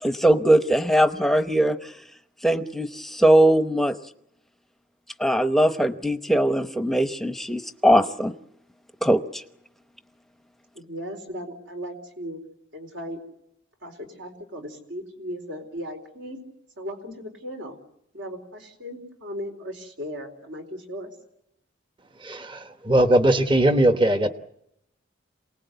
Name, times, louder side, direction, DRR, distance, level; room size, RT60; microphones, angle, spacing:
voice 1, 0.0-1.8 2.4-3.9 5.2-8.3 9.0-9.4, right 1 dB, ahead, 9 dB, 0.9 m, -20 dB
voice 2, 10.7-12.4 12.7-13.2 13.8-16.4 16.8-17.8 18.1-21.1, equal, 70° right, 4 dB, 4.3 m, -37 dB
voice 3, 22.2-24.3, right 1 dB, 25° right, 8 dB, 1.1 m, -20 dB
28.0 x 19.0 x 8.1 m, 0.79 s
head